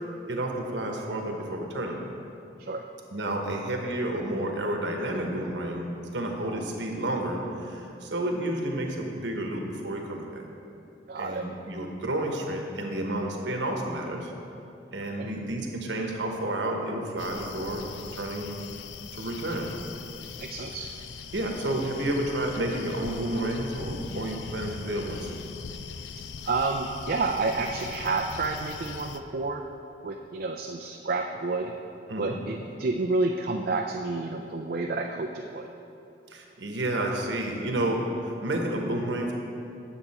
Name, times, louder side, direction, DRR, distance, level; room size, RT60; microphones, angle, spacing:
voice 1, 0.3-2.0 3.1-5.9 6.1-10.4 11.2-14.3 14.9-17.8 18.1-18.5 19.1-19.7 21.3-25.5 32.1-32.4 36.3-39.3, right 1 dB, 75° right, 1 dB, 1.1 m, -30 dB
voice 2, 11.1-11.5 15.2-15.3 20.4-20.9 26.4-29.6 30.0-31.7 32.2-35.7, right 3 dB, 55° right, 3 dB, 0.4 m, -29 dB
sound 1, 17.2-29.2, left 5 dB, 75° left, 0.4 m, -41 dB
9.0 x 7.0 x 4.2 m, 2.8 s
head